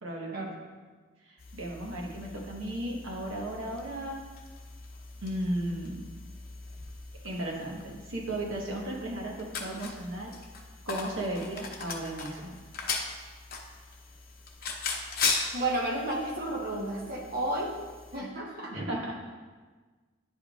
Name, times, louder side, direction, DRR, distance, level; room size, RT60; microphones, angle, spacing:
voice 1, 0.0-0.5 1.2-4.2 5.2-6.1 7.2-10.3 10.9-12.5 18.7-19.1, right 1 dB, 90° right, -1 dB, 1.3 m, -35 dB
sound 1, 1.4-18.2, left 4 dB, 50° left, 0.7 m, -39 dB
voice 2, 15.5-17.7 18.1-18.7, right 1 dB, 50° right, -2 dB, 1.2 m, -32 dB
10.5 x 5.2 x 2.4 m, 1.4 s
head